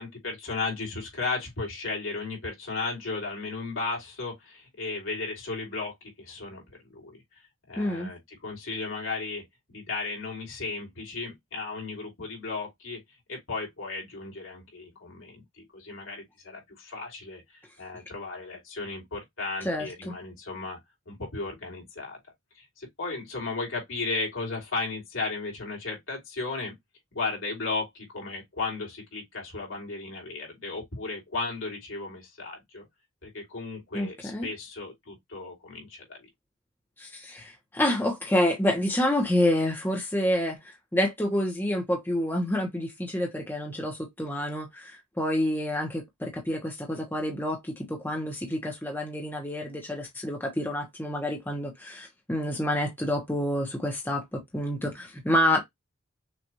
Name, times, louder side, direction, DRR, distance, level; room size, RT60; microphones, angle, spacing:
voice 1, 0.0-7.2 7.7-13.0 13.3-20.8 21.1-22.2 22.5-26.7 27.1-32.8 33.2-36.3, left 3 dB, 70° left, 3.1 m, -35 dB
voice 2, 7.8-8.1 19.6-20.1 33.9-34.5 37.0-55.6, left 1 dB, 10° left, 1.0 m, -28 dB
6.2 x 2.6 x 3.0 m
head